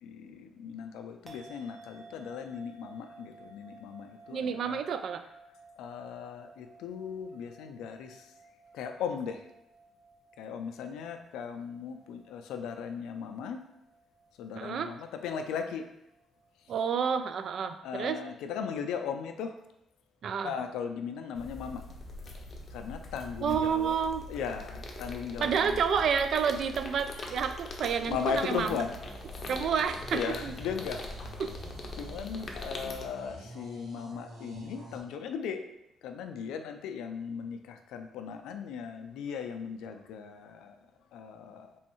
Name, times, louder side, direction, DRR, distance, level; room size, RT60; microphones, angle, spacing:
voice 1, 0.0-4.8 5.8-8.3 8.7-9.5 10.4-13.6 14.4-15.9 17.8-19.5 20.4-21.8 22.7-23.9 24.3-25.8 28.1-29.0 30.1-31.0 31.9-35.6 36.0-40.8 41.1-41.7, left 7 dB, 90° left, 7 dB, 0.3 m, -37 dB
sound 1, 1.3-17.8, right 2 dB, 35° right, 0.8 m, -57 dB
voice 2, 4.3-5.2 14.6-14.9 16.7-18.2 20.2-20.5 23.4-24.2 25.4-28.8 29.5-30.5, right 7 dB, 65° right, 9 dB, 0.3 m, -29 dB
sound 2, 21.4-33.1, left 2 dB, 45° left, 0.6 m, -42 dB
sound 3, 28.1-35.0, right 1 dB, 80° right, 1.1 m, -48 dB
3.4 x 3.1 x 3.0 m, 0.83 s
cardioid pair, 90°, 0 cm